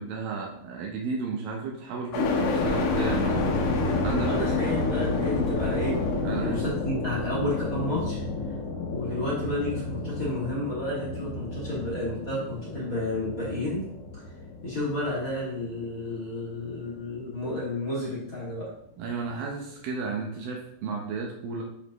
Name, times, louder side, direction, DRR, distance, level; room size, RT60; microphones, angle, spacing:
voice 1, 0.0-3.5 4.0-4.3 6.2-6.7 19.0-21.6, right 5 dB, 85° right, 0 dB, 2.0 m, -33 dB
sound 1, 2.1-16.1 16.6-17.4, left 3 dB, 85° left, 3.8 m, -29 dB
voice 2, 4.2-6.0 6.4-8.2 8.9-13.8 14.6-18.7, left 1 dB, 40° left, -7 dB, 1.2 m, -31 dB
10.0 x 5.2 x 3.0 m, 0.72 s
omnidirectional pair, 5.4 m